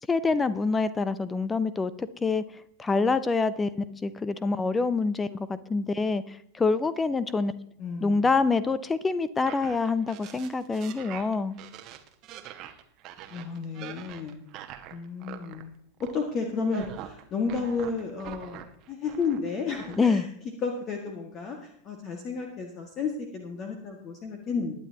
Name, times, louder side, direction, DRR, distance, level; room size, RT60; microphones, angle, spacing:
voice 1, 0.1-2.4 2.8-7.5 8.0-11.6 19.9-20.3, left 4 dB, 15° left, 16 dB, 0.6 m, -26 dB
voice 2, 7.8-8.3 13.3-14.4 14.9-15.7 16.1-18.6 18.9-20.2 20.6-24.7, left 5 dB, 30° left, 3 dB, 1.8 m, -32 dB
sound 1, 9.4-15.6 16.0-16.3 16.6-19.5 19.7-20.1, right 11 dB, 35° right, 1.2 m, -43 dB
21.0 x 9.4 x 2.9 m, 0.69 s
figure-of-eight pair, 90°, 0 cm